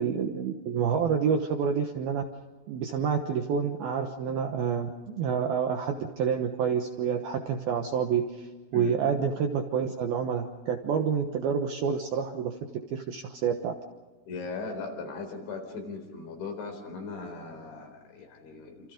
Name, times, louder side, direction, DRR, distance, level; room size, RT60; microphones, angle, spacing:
voice 1, 0.0-2.3 2.7-4.9 5.2-12.6 12.9-13.7, right 7 dB, 70° right, 4 dB, 2.4 m, -28 dB
voice 2, 14.3-18.9, left 4 dB, 65° left, 4 dB, 6.4 m, -39 dB
28.5 x 27.5 x 5.2 m, 1.3 s
omnidirectional pair, 5.9 m